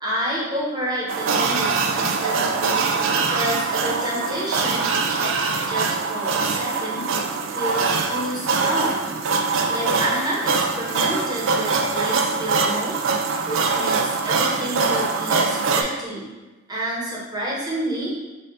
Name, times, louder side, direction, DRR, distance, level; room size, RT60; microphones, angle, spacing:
voice 1, 0.0-2.8 3.1-5.3 5.7-7.1 7.5-9.1 9.7-13.0 13.5-16.3 16.7-18.1, right 1 dB, 20° right, -5 dB, 1.0 m, -29 dB
sound 1, 1.1-15.8, right 4 dB, 75° right, 0.4 m, -23 dB
4.3 x 2.5 x 3.8 m, 1.1 s
head